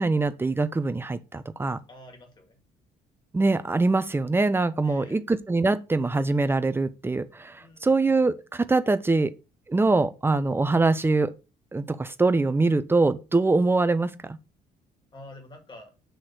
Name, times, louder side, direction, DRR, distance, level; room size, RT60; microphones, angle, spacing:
voice 1, 0.0-1.8 3.3-9.3 9.7-11.3 11.7-14.4, right 3 dB, 15° right, 0.6 m, -23 dB
voice 2, 1.9-2.6 4.8-5.2 7.6-7.9 15.1-15.9, left 1 dB, 30° left, 2.0 m, -47 dB
7.8 x 3.2 x 4.3 m
cardioid pair, 110°, 17 cm